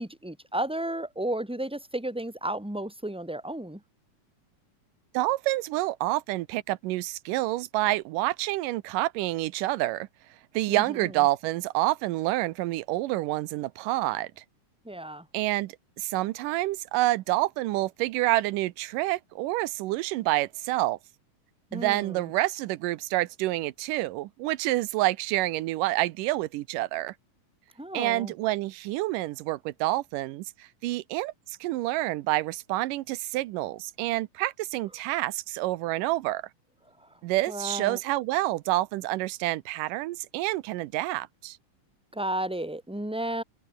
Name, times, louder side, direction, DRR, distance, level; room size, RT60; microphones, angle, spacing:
voice 1, 0.0-3.8 10.7-11.1 14.8-15.2 21.7-22.3 27.8-28.3 37.5-38.0 42.1-43.4, right 1 dB, ahead, 2.9 m, -33 dB
voice 2, 5.1-10.1 10.5-14.4 15.3-21.0 21.7-27.1 27.9-36.4 37.2-41.6, right 17 dB, 90° right, 2.3 m, -28 dB
omnidirectional pair, 3.8 m